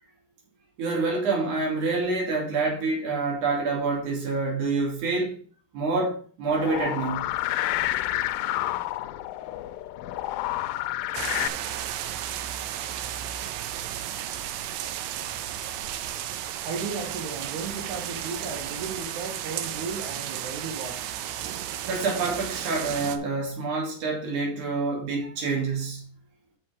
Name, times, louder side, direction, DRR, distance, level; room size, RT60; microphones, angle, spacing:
voice 1, 0.8-5.3 5.7-7.3 21.9-26.1, right 3 dB, 50° right, 3.4 m, -27 dB
sound 1, 6.5-11.5, left 15 dB, 85° left, 2.7 m, -29 dB
sound 2, 11.1-23.2, right 11 dB, 90° right, 2.8 m, -33 dB
voice 2, 16.6-21.0, right 4 dB, 65° right, 2.0 m, -35 dB
7.1 x 5.9 x 4.9 m
omnidirectional pair, 4.8 m